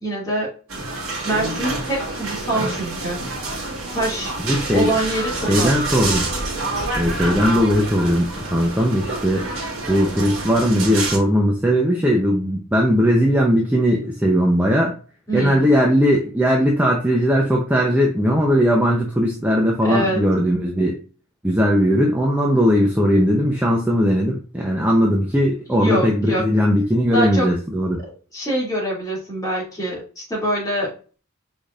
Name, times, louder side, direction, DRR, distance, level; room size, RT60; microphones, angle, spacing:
voice 1, 0.0-0.5 1.2-3.2 3.9-4.3 4.7-5.7 15.3-15.7 19.8-20.2 25.7-26.5 27.1-27.5 28.3-30.9, right 1 dB, 15° left, -5 dB, 2.5 m, -24 dB
sound 1, 0.7-11.2, right 2 dB, 75° right, 1.8 m, -27 dB
voice 2, 4.4-4.9 5.5-6.3 7.0-9.5 9.9-14.9 15.3-21.0 21.4-28.0, equal, 10° right, -1 dB, 0.7 m, -18 dB
5.1 x 4.0 x 2.5 m, 0.38 s
head